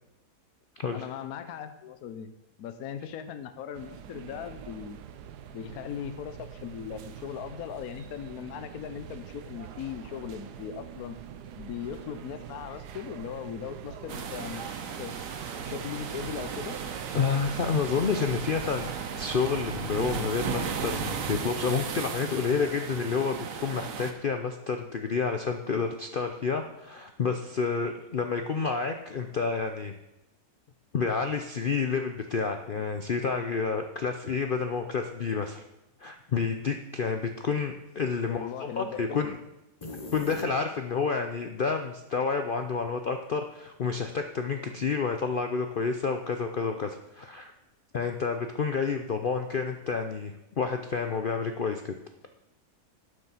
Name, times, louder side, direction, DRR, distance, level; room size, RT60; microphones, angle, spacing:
voice 1, 0.9-2.3 2.6-5.0 5.5-11.2 11.5-15.1 15.6-16.8 38.2-39.4, left 8 dB, 65° left, 10 dB, 1.2 m, -39 dB
sound 1, 3.7-21.5, right 9 dB, 75° right, 1.2 m, -44 dB
sound 2, 14.1-24.1, right 6 dB, 55° right, 1.2 m, -36 dB
voice 2, 17.1-18.9 19.2-29.9 30.9-35.6 36.0-38.5 38.8-39.4 40.1-47.5 47.9-52.0, left 5 dB, 80° left, 6 dB, 0.4 m, -29 dB
sound 3, 39.8-41.0, left 2 dB, 30° left, 0.6 m, -41 dB
12.0 x 6.5 x 5.6 m, 0.95 s
omnidirectional pair, 1.8 m